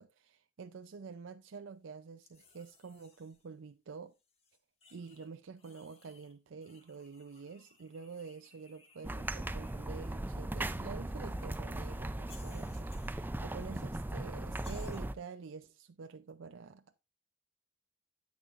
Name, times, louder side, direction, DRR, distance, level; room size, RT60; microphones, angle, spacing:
voice 1, 0.0-4.1 4.9-17.0, right 5 dB, 80° right, 0.5 m, -48 dB
sound 1, 2.2-3.5 4.1-5.3 5.6-6.3 6.6-10.2 11.2-12.0 12.2-13.7 14.0-14.1 14.6-15.0, left 4 dB, 30° left, 1.8 m, -62 dB
sound 2, 9.0-15.1, right 1 dB, 10° right, 0.3 m, -38 dB
10.0 x 8.6 x 2.5 m
head